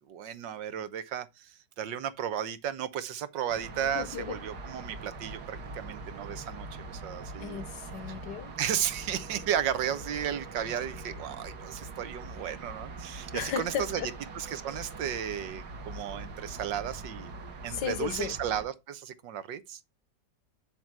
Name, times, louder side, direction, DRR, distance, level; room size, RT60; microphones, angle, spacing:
voice 1, 0.1-7.6 8.6-14.0 14.3-17.3 17.6-19.8, right 9 dB, 80° right, 1.6 m, -34 dB
sound 1, 3.5-18.7, right 3 dB, 65° right, 1.9 m, -43 dB
voice 2, 3.8-4.4 7.4-8.5 13.3-14.1 17.7-18.3, left 8 dB, 70° left, 1.5 m, -35 dB
7.5 x 6.9 x 4.6 m
omnidirectional pair, 1.9 m